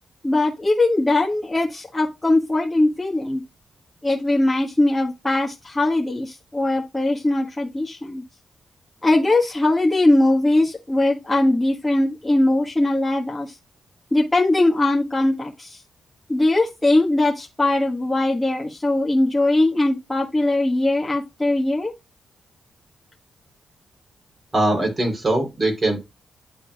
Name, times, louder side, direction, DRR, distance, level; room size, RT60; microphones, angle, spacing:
voice 1, 0.2-3.4 4.0-8.2 9.0-13.6 14.1-15.8 16.3-21.9, left 2 dB, 15° left, -4 dB, 1.4 m, -20 dB
voice 2, 24.5-26.0, right 1 dB, 40° right, 1 dB, 3.3 m, -21 dB
11.0 x 3.8 x 2.3 m, 0.23 s
supercardioid pair, 55°, 0 cm